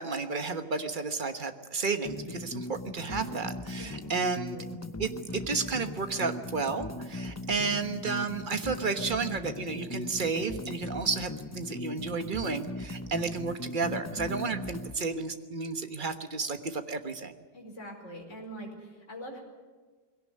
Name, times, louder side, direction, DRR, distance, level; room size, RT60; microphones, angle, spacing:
voice 1, 0.0-4.6 5.0-17.3, right 4 dB, 30° right, 8 dB, 1.2 m, -32 dB
sound 1, 2.1-15.0, left 2 dB, 20° left, 0.4 m, -39 dB
voice 2, 3.8-4.8 17.5-19.4, equal, 40° left, 1 dB, 5.1 m, -44 dB
21.0 x 17.5 x 9.6 m, 1.4 s
omnidirectional pair, 1.9 m